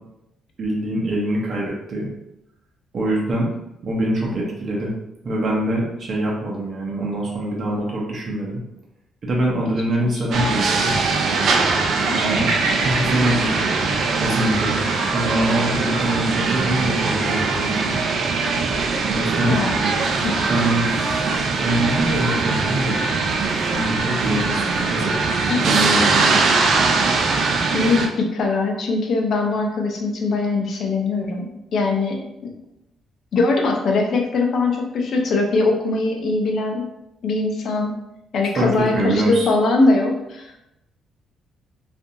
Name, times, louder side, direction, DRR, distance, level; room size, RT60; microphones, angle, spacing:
voice 1, 0.6-2.1 2.9-3.5 3.8-4.9 5.2-8.6 9.2-11.0 12.2-12.5 12.8-18.0 19.1-19.6 20.4-20.9 21.6-23.2 23.7-25.1 25.7-26.4 38.5-38.7 38.9-39.5, right 1 dB, 50° right, -4 dB, 0.7 m, -24 dB
sound 1, 10.3-28.1, right 4 dB, 65° right, 0.4 m, -21 dB
voice 2, 12.1-12.4 19.4-19.7 20.2-20.5 25.5-25.6 27.7-32.5 33.3-36.9 37.2-37.9 38.3-40.6, left 3 dB, 60° left, 2 dB, 0.5 m, -21 dB
Laughter, 12.1-15.1, right 2 dB, 90° right, 0.8 m, -28 dB
2.6 x 2.5 x 2.6 m, 0.88 s
cardioid pair, 90°, 0 cm